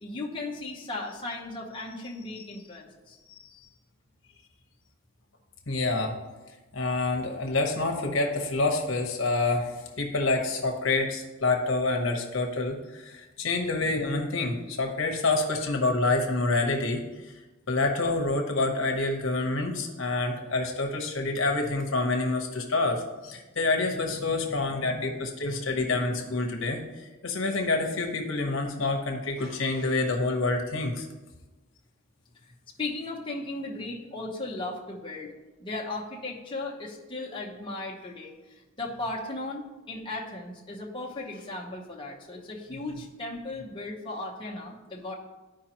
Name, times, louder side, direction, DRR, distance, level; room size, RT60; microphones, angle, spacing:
voice 1, 0.0-3.7 20.4-20.5 24.1-25.8 32.8-35.3 35.6-45.1, left 2 dB, 25° left, -3 dB, 1.0 m, -37 dB
voice 2, 5.7-6.2 6.7-17.0 17.7-26.8 27.2-31.1, left 3 dB, 65° left, 2 dB, 1.1 m, -27 dB
13.0 x 5.1 x 3.0 m, 1.1 s
head